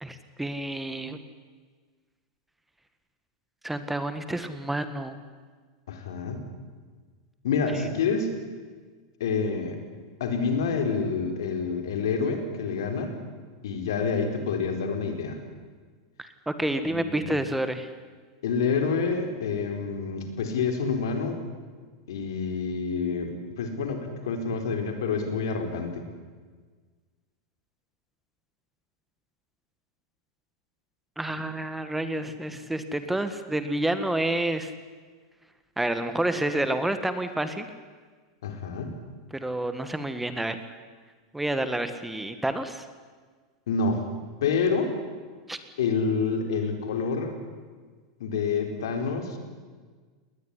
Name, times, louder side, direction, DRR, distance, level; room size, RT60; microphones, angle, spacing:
voice 1, 0.0-1.2 3.6-5.2 16.2-17.9 31.2-34.7 35.8-37.7 39.3-40.6 41.3-42.9 45.5-45.6, right 1 dB, 5° right, 10 dB, 1.7 m, -29 dB
voice 2, 5.9-6.5 7.4-8.3 9.2-9.8 10.2-13.1 13.6-15.4 16.8-17.4 18.4-21.4 22.1-26.0 38.4-38.9 43.7-44.0 44.4-44.9 45.8-47.4 48.2-49.4, left 5 dB, 75° left, 5 dB, 4.2 m, -28 dB
20.0 x 19.5 x 10.0 m, 1.5 s
hypercardioid pair, 105°, 2 cm